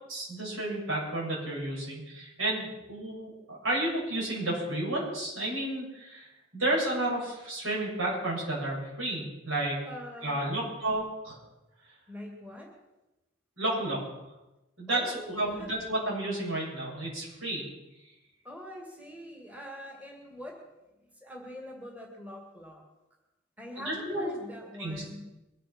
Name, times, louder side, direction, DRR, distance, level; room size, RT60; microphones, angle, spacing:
voice 1, 0.1-6.3 6.5-9.8 10.2-11.4 13.6-14.0 14.8-17.6 23.8-24.3 24.8-25.0, right 1 dB, 80° right, -4 dB, 7.6 m, -31 dB
voice 2, 9.9-10.6 12.1-12.7 14.9-15.3 15.6-15.7 18.4-20.6 21.2-22.8 23.6-25.3, equal, 5° right, 0 dB, 2.2 m, -44 dB
23.0 x 8.5 x 6.1 m, 1.0 s
head